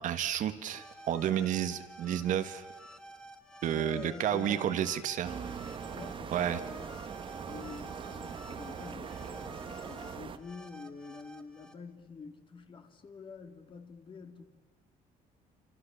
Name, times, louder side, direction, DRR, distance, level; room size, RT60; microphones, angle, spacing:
voice 1, 0.0-2.6 3.6-5.4 6.3-6.6, right 10 dB, 60° right, 10 dB, 1.6 m, -31 dB
sound 1, 0.6-11.7, right 1 dB, 5° left, 2.0 m, -51 dB
voice 2, 3.7-4.9 5.9-7.0 7.5-14.4, left 5 dB, 35° left, 7 dB, 2.4 m, -47 dB
sound 2, 5.2-10.4, right 6 dB, 35° right, 1.4 m, -41 dB
28.0 x 26.5 x 7.1 m, 1.2 s
cardioid pair, 135°, 15 cm